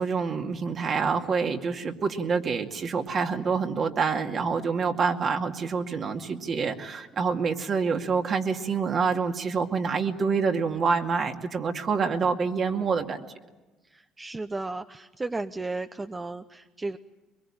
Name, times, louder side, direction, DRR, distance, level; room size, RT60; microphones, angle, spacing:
voice 1, 0.0-13.2, right 5 dB, 45° right, 4 dB, 2.3 m, -27 dB
voice 2, 13.9-17.0, right 3 dB, 20° right, 9 dB, 0.8 m, -34 dB
23.0 x 22.5 x 8.8 m, 1.1 s
supercardioid pair, 75°, 0 cm